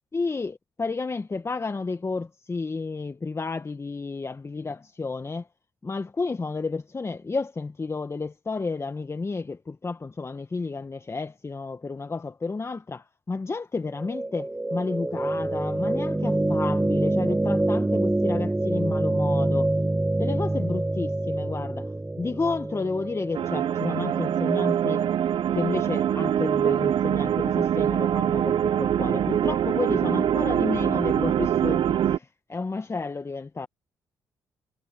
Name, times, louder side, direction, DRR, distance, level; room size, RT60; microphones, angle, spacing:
voice 1, 0.1-5.5 5.8-19.7 20.2-25.0 25.5-33.7, left 4 dB, 30° left, 1.4 m, -31 dB
sound 1, 13.9-26.0, right 2 dB, 15° right, 2.1 m, -27 dB
sound 2, 23.3-32.2, right 10 dB, 65° right, 1.2 m, -24 dB
supercardioid pair, 55°, 9 cm